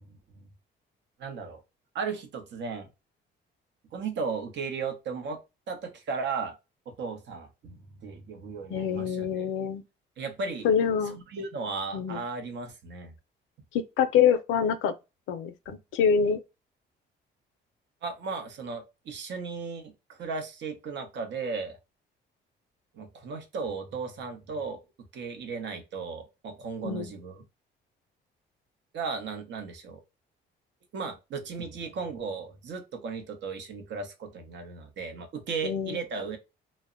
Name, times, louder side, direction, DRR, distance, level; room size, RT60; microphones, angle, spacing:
voice 1, 1.2-1.6 1.9-2.9 3.9-5.4 5.7-6.5 6.9-9.3 10.2-10.7 11.1-13.1 15.7-15.8 18.0-21.8 22.9-24.8 25.1-27.4 28.9-30.0 30.9-36.4, right 5 dB, 65° right, 0.7 m, -35 dB
voice 2, 8.7-9.8 10.6-11.2 11.9-12.2 13.7-14.9 15.3-16.4 26.8-27.1 35.6-36.0, left 7 dB, 85° left, 0.4 m, -25 dB
2.0 x 2.0 x 3.6 m
cardioid pair, 90°, 20 cm